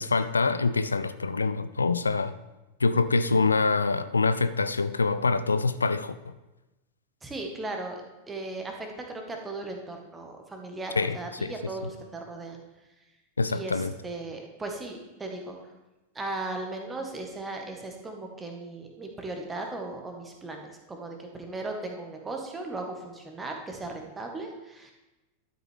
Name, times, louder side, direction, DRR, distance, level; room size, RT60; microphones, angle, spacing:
voice 1, 0.0-2.3 2.8-6.3 11.0-11.5 13.4-13.9, left 4 dB, 75° left, 14 dB, 0.4 m, -25 dB
voice 2, 7.2-12.6 13.5-15.6 16.1-24.9, right 2 dB, 15° right, 2 dB, 1.6 m, -37 dB
12.0 x 7.9 x 3.6 m, 1.0 s
figure-of-eight pair, 90°, 0 cm